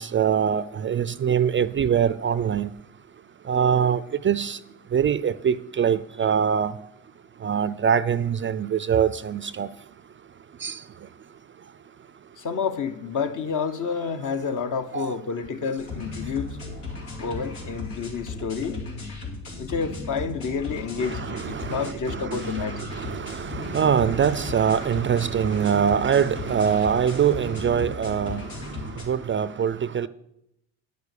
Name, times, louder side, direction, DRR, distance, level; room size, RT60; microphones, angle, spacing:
voice 1, 0.0-2.7 3.5-4.6 4.9-6.7 7.4-9.7 10.6-10.8 14.9-15.1 21.0-30.1, right 8 dB, 30° right, 0.4 m, -24 dB
voice 2, 12.4-16.6 17.2-18.8 19.6-22.8, left 5 dB, 50° left, 1.1 m, -29 dB
sound 1, 15.8-29.0, left 2 dB, 85° left, 2.5 m, -36 dB
9.5 x 6.7 x 6.7 m
supercardioid pair, 70°, 38 cm